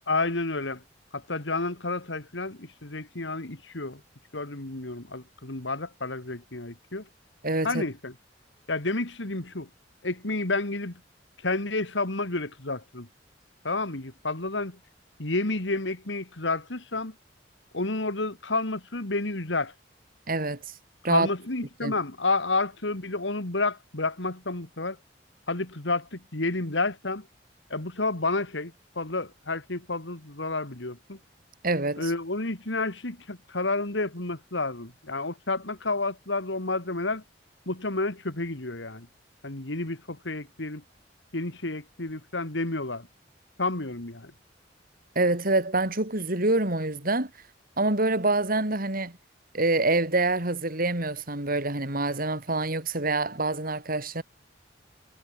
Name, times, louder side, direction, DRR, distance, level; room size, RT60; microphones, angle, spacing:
voice 1, 0.1-0.8 1.1-4.0 4.3-7.1 7.6-8.1 8.7-9.7 10.0-11.0 11.4-13.1 13.6-14.8 15.2-17.1 17.7-19.7 21.1-25.0 25.5-27.3 27.7-31.2 32.0-37.2 37.7-39.1 39.4-40.8 41.3-43.1 43.6-44.3, left 3 dB, 80° left, 2.7 m, -30 dB
voice 2, 7.4-7.8 20.3-20.6 21.0-21.3 21.8-21.9 31.6-32.1 45.1-47.3 47.8-49.2 49.5-54.2, right 2 dB, 50° right, 4.9 m, -26 dB
head